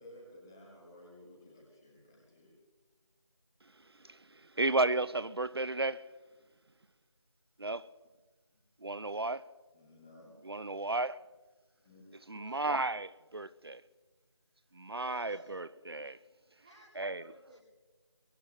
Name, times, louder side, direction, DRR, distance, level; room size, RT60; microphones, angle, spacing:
voice 1, 0.0-2.5 8.5-8.6 9.7-10.4 11.8-12.1, left 1 dB, 5° left, 1.2 m, -55 dB
voice 2, 3.6-6.1 7.6-7.9 8.8-9.5 10.4-11.2 12.3-13.8 14.7-16.2 17.0-17.3, right 2 dB, 55° right, 0.5 m, -34 dB
voice 3, 12.3-12.7 14.5-15.7 16.6-17.6, right 2 dB, 15° right, 1.4 m, -57 dB
23.0 x 16.0 x 3.1 m
figure-of-eight pair, 170°, 15 cm